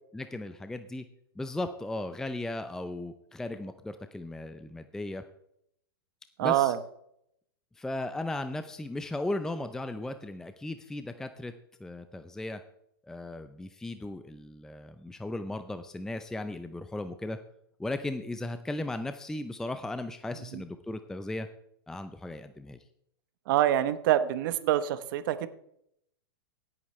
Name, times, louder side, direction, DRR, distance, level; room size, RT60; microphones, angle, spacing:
voice 1, 0.1-1.1 1.4-5.2 6.4-6.7 7.8-11.5 11.8-12.6 13.0-17.4 17.8-21.5 21.9-22.8, left 2 dB, 5° left, 9 dB, 0.5 m, -36 dB
voice 2, 6.4-6.8 20.4-20.6 23.5-25.5, right 12 dB, 55° right, 13 dB, 0.9 m, -26 dB
16.5 x 8.8 x 3.2 m, 0.74 s
hypercardioid pair, 130°, 13 cm